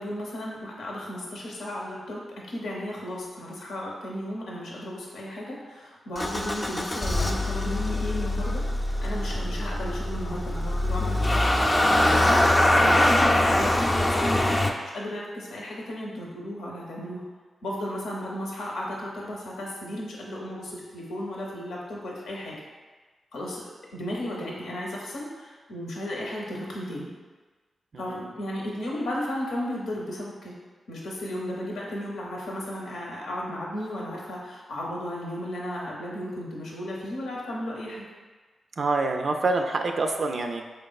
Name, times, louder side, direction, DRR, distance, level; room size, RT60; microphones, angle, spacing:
voice 1, 0.0-8.6 9.0-17.2 17.6-22.6 23.3-23.6 23.9-27.1 28.0-30.6 30.9-38.1, left 1 dB, 80° left, -3 dB, 0.7 m, -34 dB
Motor vehicle (road) / Engine starting, 6.2-14.7, left 1 dB, 30° left, 0.5 m, -23 dB
voice 2, 38.8-40.6, right 3 dB, 60° right, 4 dB, 0.3 m, -26 dB
4.6 x 3.2 x 2.3 m, 1.3 s
supercardioid pair, 45°, 0 cm